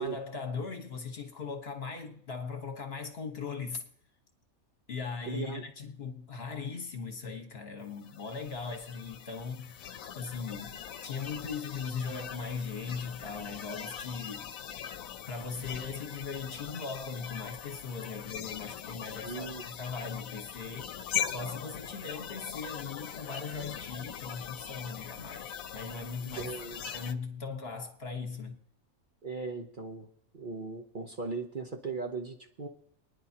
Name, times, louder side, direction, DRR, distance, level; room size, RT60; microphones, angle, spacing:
voice 1, 0.0-3.9 4.9-14.6 15.3-21.0 21.2-26.5 26.9-28.6, left 5 dB, 50° left, 1.5 m, -39 dB
voice 2, 5.3-5.7 19.2-19.7 26.4-26.8 29.2-30.1 30.3-32.7, right 4 dB, 40° right, 0.9 m, -38 dB
sound 1, 8.0-27.1, left 9 dB, 80° left, 1.1 m, -41 dB
27.5 x 10.0 x 2.9 m
omnidirectional pair, 1.4 m